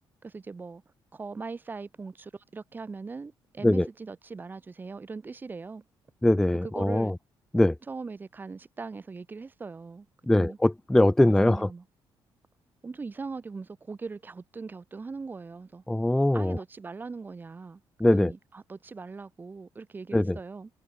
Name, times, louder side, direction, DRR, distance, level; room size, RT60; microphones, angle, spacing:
voice 1, 0.2-0.8 1.1-5.8 6.6-7.1 7.9-10.1 10.3-10.6 11.2-11.8 12.8-15.8 16.3-17.8 18.1-20.7, right 4 dB, 20° right, 4.9 m, -40 dB
voice 2, 6.2-7.1 7.5-7.7 10.3-11.7 15.9-16.6 18.0-18.3 20.1-20.4, left 1 dB, 5° left, 0.6 m, -22 dB
cardioid pair, 165°, 9 cm